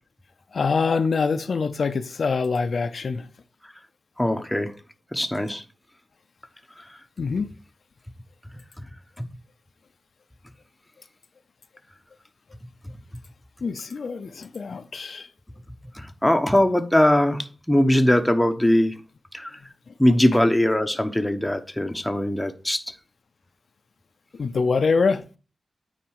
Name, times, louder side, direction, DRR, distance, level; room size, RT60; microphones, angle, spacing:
voice 1, 0.5-3.3 7.2-7.5 13.6-15.3 24.3-25.3, left 4 dB, 65° left, 0.5 m, -24 dB
voice 2, 4.2-4.7 5.1-5.6 9.2-9.3 16.0-18.9 19.3-19.5 20.0-22.8, left 1 dB, 10° left, 1.0 m, -21 dB
9.3 x 4.0 x 4.8 m
cardioid pair, 65°, 0 cm